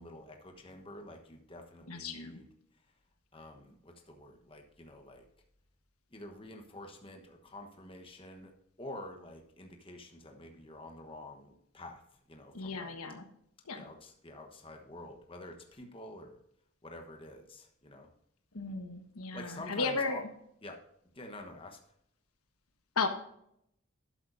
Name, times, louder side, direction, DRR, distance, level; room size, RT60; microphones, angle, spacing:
voice 1, 0.0-2.5 3.3-5.2 6.1-8.5 8.8-12.0 12.3-13.0 13.7-16.4 16.8-18.1 19.3-20.2 20.6-20.8 21.1-21.8, left 1 dB, 25° left, 3 dB, 1.1 m, -48 dB
voice 2, 1.9-2.4 12.5-13.2 13.7-13.8 18.5-20.2 23.0-23.1, left 4 dB, 85° left, 6 dB, 1.3 m, -34 dB
12.0 x 8.2 x 2.6 m, 0.73 s
head